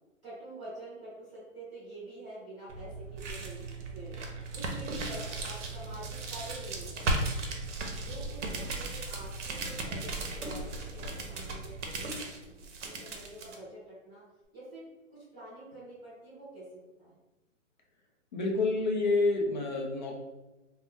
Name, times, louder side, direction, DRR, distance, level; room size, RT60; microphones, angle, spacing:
voice 1, 0.2-4.2 4.5-7.5 8.0-14.2 14.5-17.1, right 1 dB, 10° right, -14 dB, 0.9 m, -47 dB
sound 1, 2.7-13.6, right 2 dB, 65° right, 0.7 m, -36 dB
voice 2, 18.3-20.2, left 3 dB, 35° left, 0 dB, 0.5 m, -28 dB
2.7 x 2.1 x 3.3 m, 1.1 s
hypercardioid pair, 170°, 38 cm